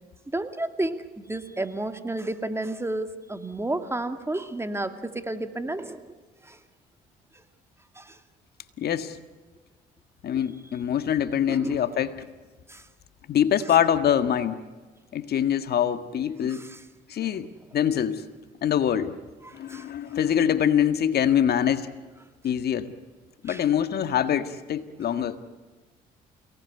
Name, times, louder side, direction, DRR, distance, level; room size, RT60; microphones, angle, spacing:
voice 1, 0.3-6.1 6.4-6.6 7.9-8.2 11.5-11.9 12.7-12.9 16.4-16.8 17.2-17.4 19.4-19.9 23.5-23.7, right 2 dB, 15° right, 8 dB, 2.5 m, -32 dB
voice 2, 8.8-9.2 10.2-12.1 13.3-14.6 15.1-16.7 17.1-17.5 17.7-18.2 18.6-19.2 19.5-21.9 22.4-22.9 23.4-25.4, left 9 dB, 60° left, 10 dB, 1.7 m, -24 dB
29.5 x 19.0 x 9.5 m, 1.3 s
supercardioid pair, 70°, 19 cm